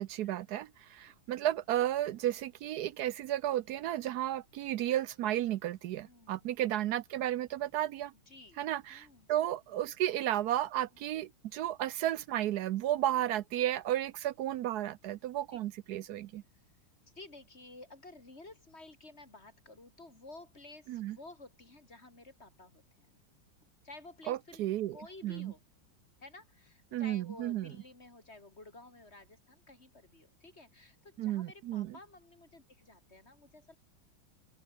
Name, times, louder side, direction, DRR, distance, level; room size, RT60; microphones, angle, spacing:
voice 1, 0.0-8.1 8.6-16.4 20.9-21.2 24.3-25.0 25.2-25.5 26.9-27.7 31.2-32.0, right 12 dB, 75° right, 0.9 m, -33 dB
voice 2, 6.0-6.5 8.3-8.6 8.9-9.3 13.1-13.2 15.5-15.6 16.5-16.6 17.0-23.1 23.8-24.6 24.9-25.6 26.2-33.8, left 2 dB, 30° left, 3.9 m, -53 dB
open air
omnidirectional pair, 2.2 m